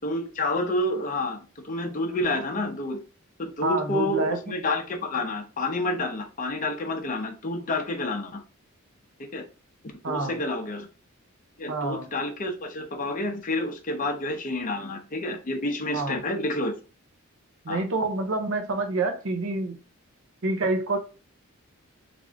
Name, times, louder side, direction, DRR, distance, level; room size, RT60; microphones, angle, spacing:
voice 1, 0.0-1.4 1.6-3.0 3.4-8.4 9.3-9.5 9.8-10.9 11.6-16.7 17.7-17.8, left 2 dB, 40° left, 0.6 m, -29 dB
voice 2, 3.6-4.5 10.0-10.4 11.7-12.1 15.9-16.2 17.6-19.8 20.4-21.0, right 2 dB, 65° right, 0.7 m, -27 dB
3.3 x 2.5 x 3.5 m
head